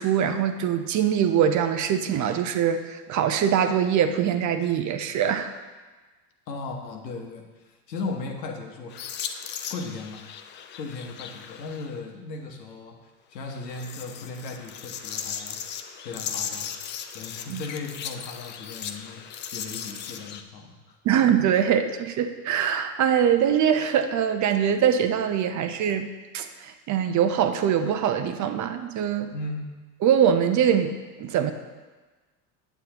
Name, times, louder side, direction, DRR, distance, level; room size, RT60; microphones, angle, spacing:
voice 1, 0.0-5.5 17.5-17.6 21.0-26.1 26.3-29.3 30.0-31.5, right 8 dB, 35° right, 8 dB, 0.6 m, -23 dB
voice 2, 6.5-9.0 9.4-10.2 10.8-13.0 13.3-15.6 16.0-16.7 17.1-21.0 29.3-29.8, left 3 dB, 85° left, 3 dB, 1.2 m, -37 dB
sound 1, 8.9-11.9 13.5-20.4, left 8 dB, 25° left, 0.3 m, -37 dB
9.0 x 6.9 x 2.9 m, 1.3 s
hypercardioid pair, 85°, 49 cm